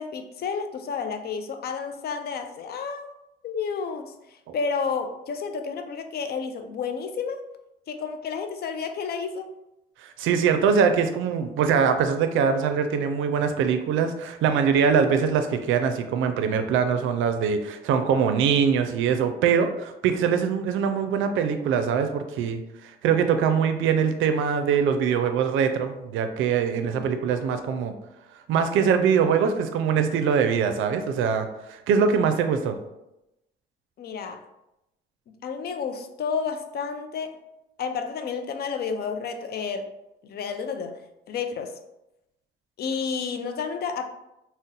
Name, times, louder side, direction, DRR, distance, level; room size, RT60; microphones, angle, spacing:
voice 1, 0.0-3.1 3.4-7.4 7.9-9.5 26.6-27.1 34.0-34.5 35.4-37.4 37.8-39.9 40.2-41.0 41.3-41.8 42.8-44.0, left 5 dB, 55° left, 7 dB, 0.4 m, -31 dB
voice 2, 10.0-27.9 28.5-32.8, right 6 dB, 80° right, 8 dB, 0.4 m, -23 dB
2.6 x 2.0 x 3.8 m, 0.90 s
cardioid pair, 90°, 20 cm